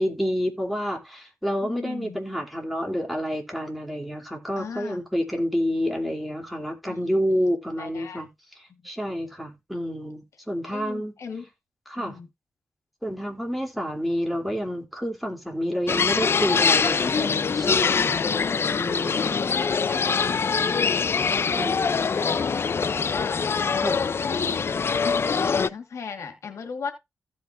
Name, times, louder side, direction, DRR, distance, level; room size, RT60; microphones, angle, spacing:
voice 1, 0.0-8.3 8.8-11.1 11.9-12.2 13.0-18.2 18.8-19.4 21.5-21.8 23.8-24.0, equal, ahead, 3.0 m, -29 dB
voice 2, 1.6-2.2 4.6-5.0 6.8-7.5 7.8-8.2 8.7-8.8 10.7-11.5 12.0-12.3 18.2-18.6 19.5-23.5 24.2-24.7 25.0-26.9, left 5 dB, 80° left, 1.5 m, -37 dB
sound 1, 15.9-25.7, left 5 dB, 55° left, 0.4 m, -23 dB
15.5 x 5.5 x 2.5 m
cardioid pair, 60°, 5 cm